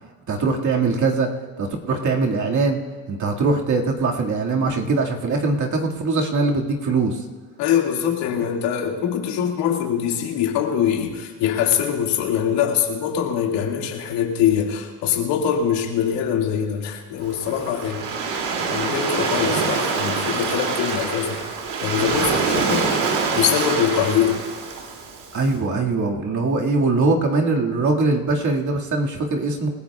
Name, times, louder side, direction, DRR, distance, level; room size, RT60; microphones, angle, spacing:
voice 1, 0.3-1.3 1.6-2.8 3.1-7.2 25.3-29.7, right 3 dB, 45° right, 0 dB, 2.1 m, -21 dB
voice 2, 7.6-18.1 18.6-21.5 21.8-22.9 23.3-24.4, left 8 dB, 85° left, 1 dB, 2.3 m, -23 dB
Waves surf, 17.2-25.4, right 4 dB, 75° right, 2.8 m, -25 dB
27.5 x 15.5 x 2.4 m, 1.5 s
supercardioid pair, 85°, 41 cm